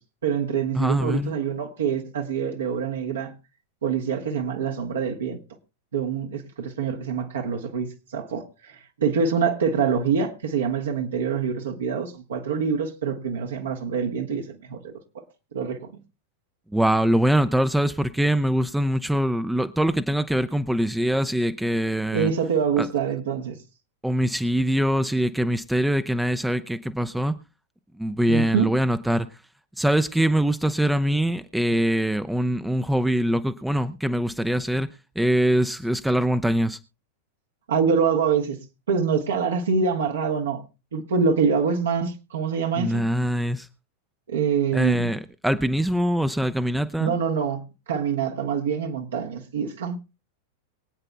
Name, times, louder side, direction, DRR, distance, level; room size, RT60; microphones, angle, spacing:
voice 1, 0.2-3.3 3.8-5.4 5.9-15.2 15.5-15.9 22.1-23.6 28.3-28.7 37.7-38.6 38.9-40.6 40.9-43.0 44.3-45.1 47.0-50.0, right 6 dB, 65° right, 1.3 m, -25 dB
voice 2, 0.7-1.3 16.7-22.3 22.8-22.9 24.0-27.4 28.0-29.3 29.8-34.9 35.2-36.8 42.8-43.7 44.7-47.1, equal, 5° right, 0.5 m, -23 dB
23.5 x 8.9 x 2.2 m
figure-of-eight pair, 90°, 0 cm